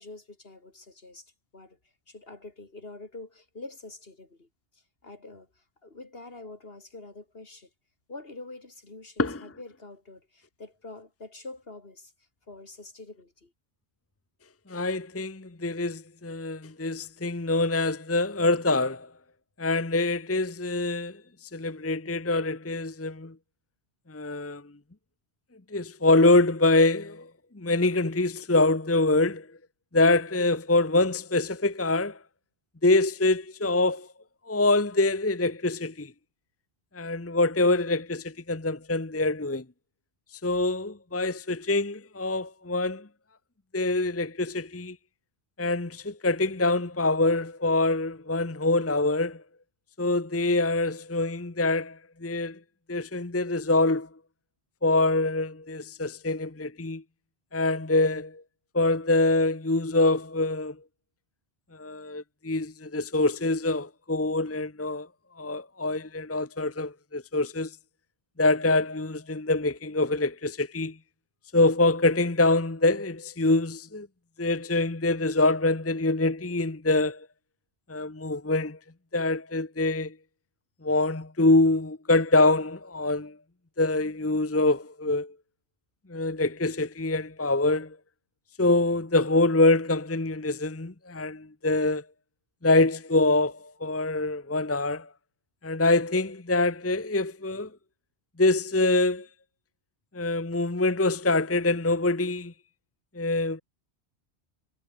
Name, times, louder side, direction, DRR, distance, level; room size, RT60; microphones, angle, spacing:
voice 1, 0.0-1.8 2.1-7.7 8.1-12.1 12.5-13.5, left 2 dB, 60° left, 3.4 m, -46 dB
voice 2, 14.7-19.1 19.6-21.2 21.5-23.3 24.1-24.6 25.7-27.3 27.5-29.5 29.9-32.2 32.8-34.1 34.5-36.1 36.9-39.6 40.4-43.1 43.7-45.0 45.6-49.4 50.0-52.6 52.9-54.1 54.8-57.0 57.5-58.4 58.7-60.8 61.7-65.1 65.4-67.7 68.4-71.0 71.5-74.1 74.4-77.3 77.9-78.8 79.1-80.1 80.8-83.4 83.8-85.3 86.1-88.0 88.6-92.0 92.6-95.1 95.6-97.7 98.4-99.3 100.1-102.5 103.1-103.6, left 2 dB, 15° left, 0.9 m, -25 dB
omnidirectional pair, 1.1 m